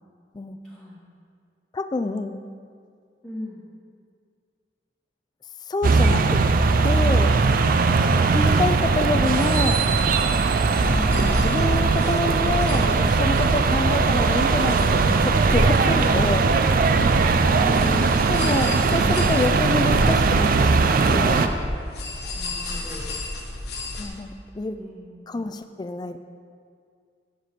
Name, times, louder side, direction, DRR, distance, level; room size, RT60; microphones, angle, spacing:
voice 1, 0.6-1.0 3.2-3.6 8.0-8.5 17.4-18.8 22.3-23.2 24.8-25.3, equal, 5° left, -9 dB, 1.2 m, -36 dB
voice 2, 1.7-2.4 5.7-6.4 6.8-7.4 8.3-9.8 10.9-16.8 18.3-21.5 24.0-24.8 25.3-26.2, left 2 dB, 25° left, 10 dB, 0.3 m, -28 dB
sound 1, 5.8-21.5, right 4 dB, 50° right, 0.4 m, -19 dB
sound 2, 10.8-24.1, left 1 dB, 65° left, 1.0 m, -32 dB
7.7 x 6.7 x 4.5 m, 2.2 s
head